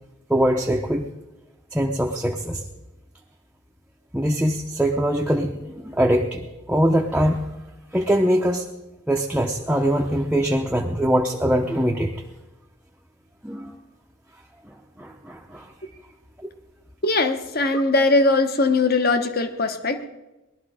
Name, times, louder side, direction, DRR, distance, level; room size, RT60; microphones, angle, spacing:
voice 1, 0.3-1.0 1.7-2.6 4.1-6.4 6.7-7.5 7.9-8.7 9.1-12.1 13.4-13.8 14.7-15.7 16.4-16.5, equal, 5° right, 0 dB, 0.7 m, -22 dB
voice 2, 17.0-20.0, left 3 dB, 45° left, 8 dB, 1.1 m, -20 dB
19.5 x 12.0 x 5.0 m, 1.0 s
head